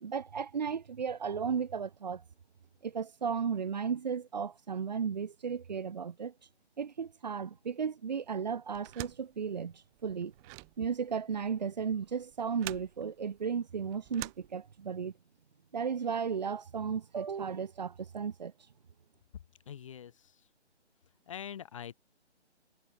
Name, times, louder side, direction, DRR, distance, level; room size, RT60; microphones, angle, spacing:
voice 1, 0.0-2.2 2.8-6.3 6.8-10.3 10.8-15.1 15.7-18.5, right 6 dB, 35° right, 2.3 m, -35 dB
sound 1, 8.7-15.1, right 39 dB, 10° right, 1.3 m, -47 dB
voice 2, 19.7-20.1 21.3-21.9, left 9 dB, 25° left, 2.6 m, -43 dB
figure-of-eight pair, 155°, 35 cm